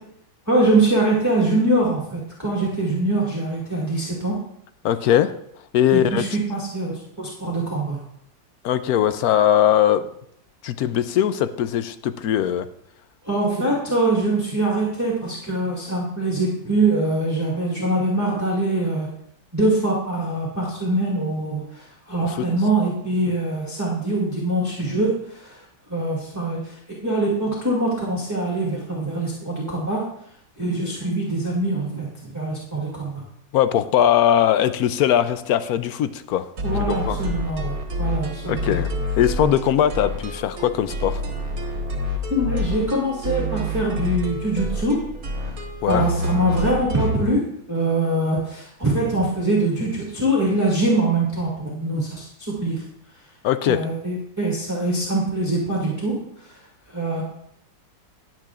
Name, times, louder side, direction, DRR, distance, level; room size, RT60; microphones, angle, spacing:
voice 1, 0.5-4.3 5.9-8.0 13.2-19.1 19.5-25.6 25.9-26.8 27.0-30.0 30.6-32.1 32.3-33.2 36.6-38.8 39.4-39.5 42.3-45.0 45.4-45.5 45.8-47.4 47.7-52.8 53.7-56.2 56.9-57.2, right 2 dB, 10° right, -5 dB, 2.0 m, -23 dB
voice 2, 4.8-5.3 5.7-6.3 8.6-10.0 10.6-12.7 22.2-22.5 33.5-37.2 38.5-38.9 39.2-41.2 45.8-46.1 53.4-53.8, left 10 dB, 70° left, 12 dB, 0.9 m, -20 dB
sound 1, 36.6-47.2, equal, 50° right, 1.8 m, -28 dB
20.5 x 7.5 x 2.5 m, 0.71 s
omnidirectional pair, 2.0 m